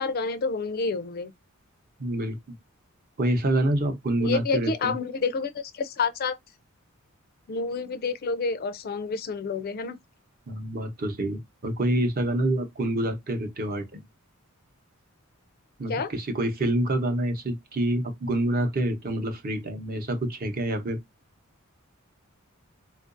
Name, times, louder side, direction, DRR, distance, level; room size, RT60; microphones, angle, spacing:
voice 1, 0.0-1.3 4.2-6.4 7.5-10.0 15.9-16.1, left 4 dB, 45° left, 0.4 m, -29 dB
voice 2, 2.0-2.6 3.2-4.9 10.5-14.0 15.8-21.0, right 1 dB, 45° right, 0.8 m, -27 dB
3.7 x 2.5 x 2.5 m
head